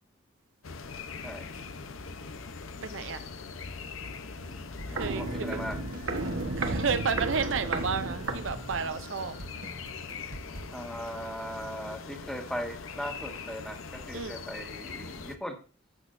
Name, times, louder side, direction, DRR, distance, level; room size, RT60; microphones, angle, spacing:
sound 1, 0.6-15.4, left 4 dB, 85° left, 0.8 m, -42 dB
voice 1, 2.8-3.3 4.9-5.6 6.6-9.4 14.1-14.3, right 5 dB, 70° right, 0.6 m, -32 dB
Walk footsteps, 4.4-9.1 9.4-9.5, right 2 dB, 85° right, 1.3 m, -34 dB
sound 2, 4.8-10.6, right 1 dB, 45° right, 1.3 m, -44 dB
voice 2, 4.9-5.8 10.7-15.6, equal, 5° left, 1.5 m, -38 dB
12.0 x 8.3 x 2.6 m
head